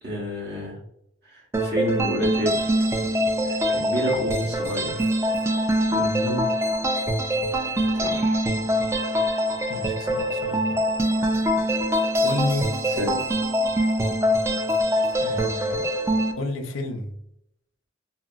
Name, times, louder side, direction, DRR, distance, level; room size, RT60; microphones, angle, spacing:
voice 1, 0.0-0.8 1.2-2.6 3.4-5.1 7.9-8.4 12.8-13.2, equal, 55° right, -3 dB, 1.1 m, -29 dB
sound 1, 1.5-16.3, equal, 15° right, 0.3 m, -24 dB
voice 2, 5.9-6.5 9.7-10.8 12.2-12.7 15.2-15.9 16.3-17.1, left 2 dB, 90° left, 6 dB, 0.5 m, -30 dB
2.8 x 2.8 x 2.4 m, 0.76 s
head